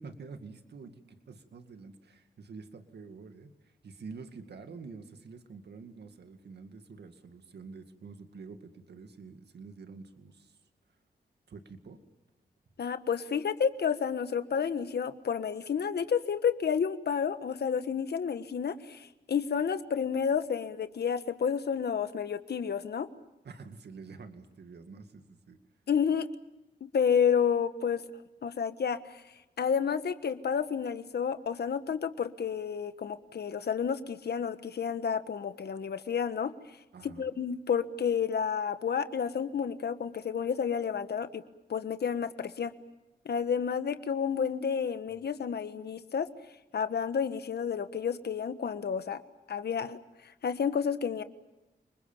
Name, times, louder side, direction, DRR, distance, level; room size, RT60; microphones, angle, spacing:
voice 1, 0.0-10.6 11.5-12.0 23.4-25.6 36.9-37.3, right 4 dB, 75° right, 7 dB, 2.2 m, -48 dB
voice 2, 12.8-23.1 25.9-26.3 26.9-28.0 28.4-29.2 29.6-36.5 37.0-41.4 41.7-42.7 43.2-46.3 46.7-49.2 49.5-51.2, left 7 dB, 70° left, 11 dB, 1.4 m, -30 dB
29.5 x 21.0 x 7.4 m, 0.99 s
cardioid pair, 60°, 17 cm